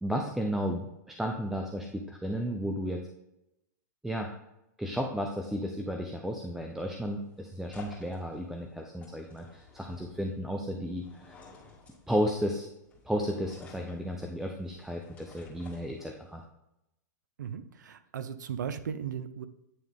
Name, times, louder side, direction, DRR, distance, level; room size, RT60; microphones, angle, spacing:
voice 1, 0.0-3.0 4.0-4.3 4.8-11.3 12.1-12.7 13.0-16.4, equal, 5° right, 2 dB, 0.5 m, -33 dB
sound 1, 6.6-16.4, left 5 dB, 15° left, 2.1 m, -54 dB
voice 2, 17.4-19.5, right 8 dB, 85° right, 12 dB, 0.6 m, -37 dB
9.3 x 3.5 x 3.5 m, 0.87 s
hypercardioid pair, 130°, 10 cm